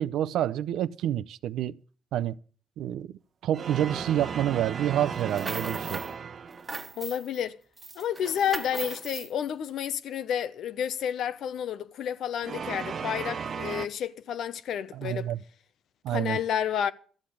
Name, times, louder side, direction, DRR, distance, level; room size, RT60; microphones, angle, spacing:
voice 1, 0.0-1.8 2.1-2.4 2.8-6.0 14.9-15.4 16.0-16.4, right 11 dB, 85° right, 0.6 m, -28 dB
sound 1, 3.5-6.9 12.4-13.9, right 6 dB, 50° right, 0.9 m, -35 dB
sound 2, 5.1-6.1 6.5-7.4 7.8-9.3, right 3 dB, 20° right, 1.6 m, -38 dB
voice 2, 7.0-7.6 7.9-15.3 16.1-16.9, left 9 dB, 75° left, 0.9 m, -30 dB
13.5 x 7.8 x 8.6 m
cardioid pair, 90°, 0 cm